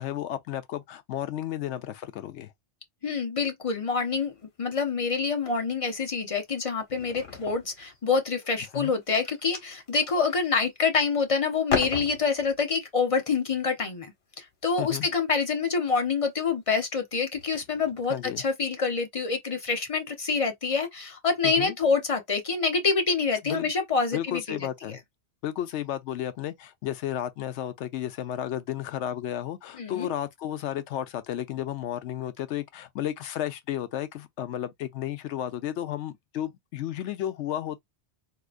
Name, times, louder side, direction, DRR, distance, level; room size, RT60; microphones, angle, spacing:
voice 1, 0.0-2.5 8.7-8.9 14.8-15.1 18.1-18.4 21.4-21.8 23.4-23.7 24.1-25.0 25.4-37.8, left 11 dB, 80° left, 0.9 m, -33 dB
voice 2, 3.0-24.6 29.8-30.1, left 5 dB, 35° left, 0.7 m, -27 dB
sound 1, 4.0-4.8 5.2-5.6 5.9-8.3 8.8-11.2 11.5-12.6 13.6-13.8 15.0-15.2 16.0-16.2 16.8-16.9 17.2-18.2, left 5 dB, 60° left, 1.3 m, -37 dB
3.7 x 2.9 x 2.4 m
omnidirectional pair, 1.2 m